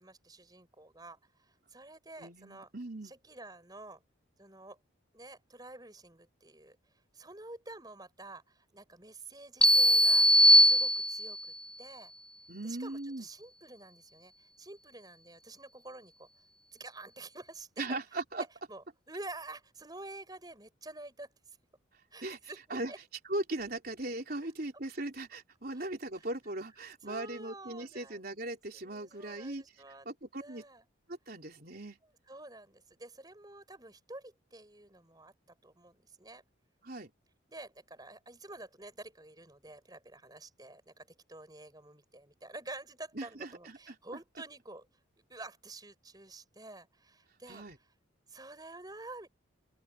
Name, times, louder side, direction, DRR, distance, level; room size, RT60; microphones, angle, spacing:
voice 1, 0.0-2.7 3.0-4.0 4.4-4.8 5.1-6.8 7.1-11.4 11.8-12.1 12.6-16.3 16.7-18.0 18.4-21.3 22.1-23.0 25.7-25.9 26.1-26.2 27.1-28.2 28.8-30.1 30.4-30.8 32.3-35.3 35.6-36.4 37.5-44.9 45.3-47.6 48.3-49.3, right 2 dB, 20° right, 6.3 m, -49 dB
voice 2, 2.2-3.1 12.5-13.3 17.8-18.4 22.2-22.4 22.7-22.9 23.3-29.6 30.1-30.6 31.1-32.0 36.8-37.1 43.2-44.0 47.5-47.8, right 2 dB, 50° right, 3.9 m, -39 dB
sound 1, 9.6-11.5, equal, 5° left, 0.7 m, -21 dB
open air
head